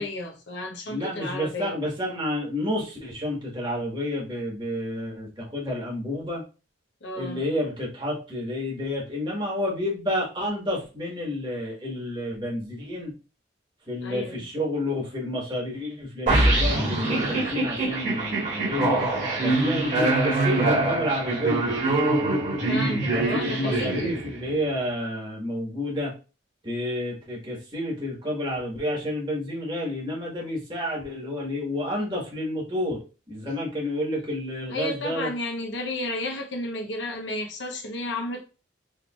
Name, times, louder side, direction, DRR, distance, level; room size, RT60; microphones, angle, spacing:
voice 1, 0.0-1.7 7.0-7.4 14.0-14.5 22.7-24.2 34.7-38.4, left 1 dB, 70° left, 0.8 m, -32 dB
voice 2, 0.9-6.4 7.1-13.1 13.9-19.0 19.4-21.8 22.5-26.1 26.6-33.0 33.3-35.3, left 1 dB, 25° right, 1.4 m, -30 dB
sound 1, 16.3-24.5, right 2 dB, 40° right, 1.6 m, -24 dB
4.5 x 3.2 x 2.3 m
head